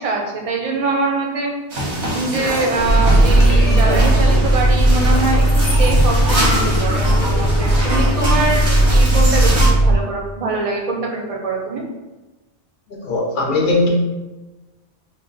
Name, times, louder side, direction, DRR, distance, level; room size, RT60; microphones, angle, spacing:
voice 1, 0.0-1.5 2.1-11.8, right 3 dB, 45° right, 0 dB, 0.5 m, -23 dB
sound 1, 1.7-9.7, right 1 dB, 85° right, 1.2 m, -24 dB
sound 2, 2.7-8.5, equal, 30° left, 0.4 m, -27 dB
sound 3, 2.8-9.9, right 1 dB, 80° left, 1.0 m, -15 dB
voice 2, 12.9-13.9, left 2 dB, 55° left, -1 dB, 0.8 m, -19 dB
3.1 x 2.1 x 3.9 m, 1.1 s
omnidirectional pair, 1.1 m